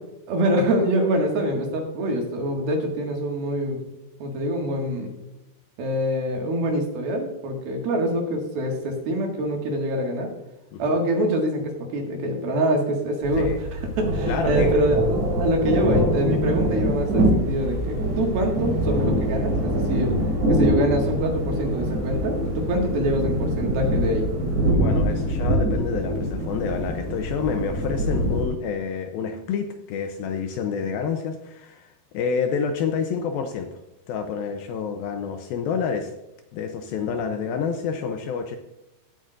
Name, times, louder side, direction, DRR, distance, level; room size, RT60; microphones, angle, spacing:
voice 1, 0.3-3.8 4.2-5.1 5.8-10.3 10.8-15.0 15.4-20.1 20.5-24.3, right 1 dB, 65° right, 1 dB, 3.5 m, -25 dB
sound 1, 13.2-28.5, equal, 45° right, 3.9 m, -24 dB
voice 2, 14.3-14.7 24.7-33.8 34.1-36.1 36.5-38.6, left 6 dB, 80° left, 6 dB, 2.3 m, -28 dB
16.0 x 8.5 x 2.5 m, 0.94 s
omnidirectional pair, 4.8 m